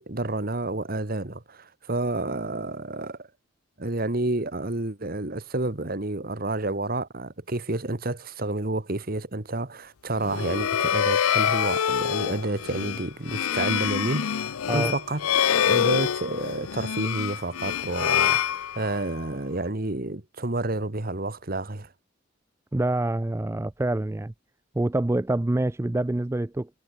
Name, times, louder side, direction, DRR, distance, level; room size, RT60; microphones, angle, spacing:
voice 1, 0.0-3.3 3.8-21.9, right 2 dB, 45° right, 1.5 m, -30 dB
sound 1, 10.2-19.2, left 9 dB, 90° left, 0.5 m, -26 dB
voice 2, 22.7-24.3 24.8-26.7, right 1 dB, 10° right, 0.3 m, -26 dB
head